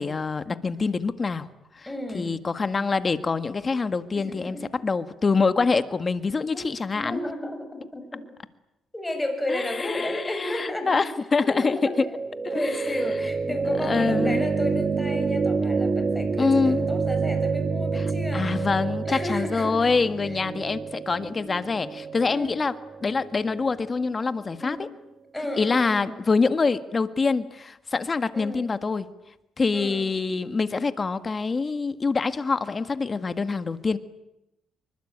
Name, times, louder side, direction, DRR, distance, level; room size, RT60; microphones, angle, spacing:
voice 1, 0.0-1.5 1.7-1.9 2.1-4.6 4.8-7.2 9.5-12.0 12.4-12.8 13.5-13.6 13.8-14.5 16.4-16.9 18.3-22.7 23.0-24.9 25.6-29.1 29.6-34.0, left 4 dB, 35° left, 11 dB, 1.7 m, -25 dB
voice 2, 1.9-2.4 4.1-4.7 6.5-6.7 6.9-8.3 8.9-11.1 11.4-12.1 12.5-18.7 19.1-19.9 20.3-20.4 22.2-22.5 24.6-24.8 25.3-26.2 28.3-28.7 29.7-30.1, left 1 dB, 10° left, 6 dB, 7.0 m, -32 dB
sound 1, 11.8-23.8, right 4 dB, 35° right, 2.5 m, -28 dB
26.5 x 24.0 x 8.9 m, 0.92 s
cardioid pair, 90°, 0 cm